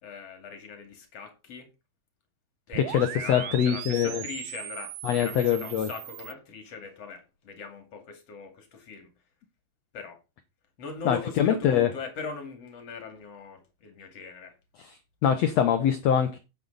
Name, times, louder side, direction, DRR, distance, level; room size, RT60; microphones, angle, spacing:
voice 1, 0.0-1.7 2.7-9.1 9.9-10.2 10.8-14.5, left 5 dB, 45° left, 3.2 m, -41 dB
sound 1, 2.7-6.3, right 16 dB, 80° right, 2.0 m, -39 dB
voice 2, 2.9-4.2 5.0-5.9 11.0-11.9 14.8-15.0 15.2-16.4, left 9 dB, 65° left, 1.7 m, -24 dB
9.5 x 8.8 x 4.0 m
omnidirectional pair, 4.1 m